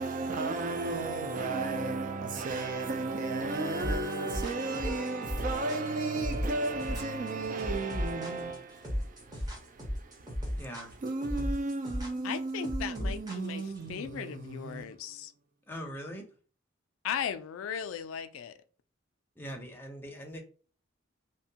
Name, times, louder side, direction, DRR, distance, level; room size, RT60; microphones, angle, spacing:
voice 1, 0.0-8.6 11.0-14.8, right 3 dB, 40° right, 0.3 m, -33 dB
sound 1, 3.8-13.8, equal, 20° right, 0.8 m, -35 dB
voice 2, 10.5-11.0 15.7-16.3 19.4-20.4, equal, 10° left, 0.6 m, -41 dB
voice 3, 12.2-15.3 17.0-18.6, left 8 dB, 85° left, 0.3 m, -37 dB
2.7 x 2.1 x 2.7 m
head